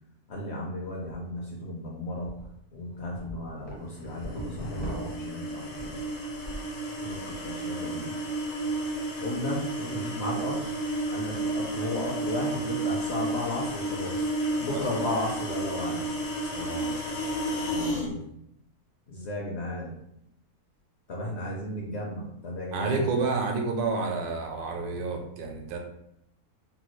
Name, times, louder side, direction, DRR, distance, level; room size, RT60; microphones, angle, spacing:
voice 1, 0.3-2.4 2.7-6.1 7.0-8.2 9.2-10.7 11.1-14.3 14.6-16.1 17.7-18.3 19.1-19.9 21.1-23.1, left 1 dB, 60° left, -2 dB, 0.7 m, -34 dB
sound 1, 1.1-1.2 1.6-1.7 2.2-2.5 2.9-6.7 7.1-7.5, equal, 35° right, 0.4 m, -39 dB
sound 2, 4.2-18.1, right 1 dB, 90° left, 1.3 m, -32 dB
voice 2, 16.5-16.9 22.7-25.8, right 4 dB, 80° right, 3 dB, 1.1 m, -29 dB
3.1 x 2.2 x 3.0 m, 0.77 s
omnidirectional pair, 1.6 m